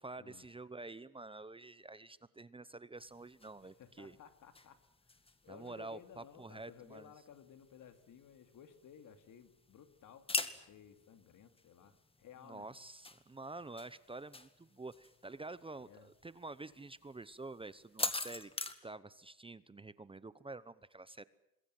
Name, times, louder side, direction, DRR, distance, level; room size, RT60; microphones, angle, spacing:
voice 1, 0.0-4.2 5.5-7.1 12.5-18.5 18.8-21.2, right 2 dB, 15° right, 16 dB, 0.8 m, -48 dB
sound 1, 3.0-18.7, left 2 dB, 15° left, 2.0 m, -46 dB
voice 2, 3.6-12.7 15.8-16.1, left 8 dB, 65° left, 9 dB, 2.6 m, -57 dB
26.5 x 21.5 x 7.8 m, 0.85 s
cardioid pair, 110°, 33 cm